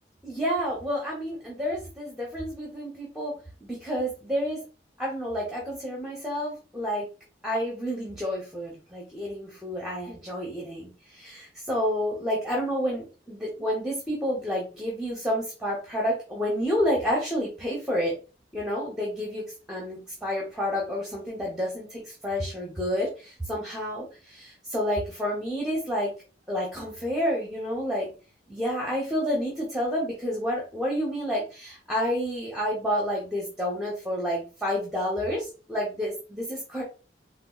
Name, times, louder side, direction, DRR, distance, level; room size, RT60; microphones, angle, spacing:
voice 1, 0.2-3.3 3.6-4.6 5.0-7.1 7.4-18.1 18.5-26.1 26.5-28.1 28.5-36.8, equal, 5° right, -3 dB, 0.9 m, -29 dB
4.1 x 2.4 x 2.3 m, 0.34 s
head